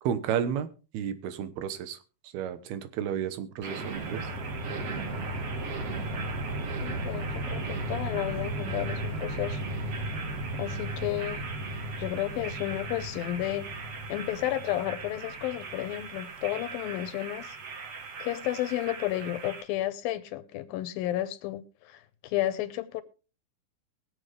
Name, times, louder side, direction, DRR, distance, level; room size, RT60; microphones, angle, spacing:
voice 1, 0.0-0.7 0.9-2.0 2.3-4.3, right 8 dB, 90° right, 3.1 m, -32 dB
sound 1, 3.6-19.6, right 2 dB, 50° right, 2.5 m, -35 dB
voice 2, 6.8-9.6 10.6-11.4 12.0-13.7 14.1-17.6 18.2-23.0, left 14 dB, 80° left, 2.5 m, -32 dB
22.0 x 7.8 x 3.4 m
omnidirectional pair, 4.3 m